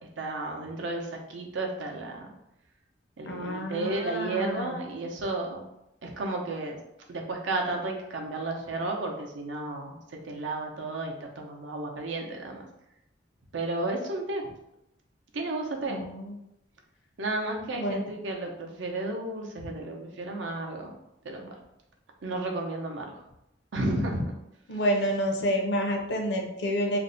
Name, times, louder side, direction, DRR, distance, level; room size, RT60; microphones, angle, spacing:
voice 1, 0.2-2.3 3.2-5.6 6.0-6.8 7.1-10.0 10.2-12.7 13.5-14.4 15.3-16.0 17.2-20.9 21.2-21.5 22.2-23.2 23.7-24.3, right 2 dB, 85° right, 1 dB, 0.6 m, -32 dB
voice 2, 3.3-4.8 15.9-16.3 17.7-18.1 24.7-27.0, equal, 65° left, 2 dB, 0.5 m, -29 dB
2.5 x 2.1 x 3.8 m, 0.84 s
head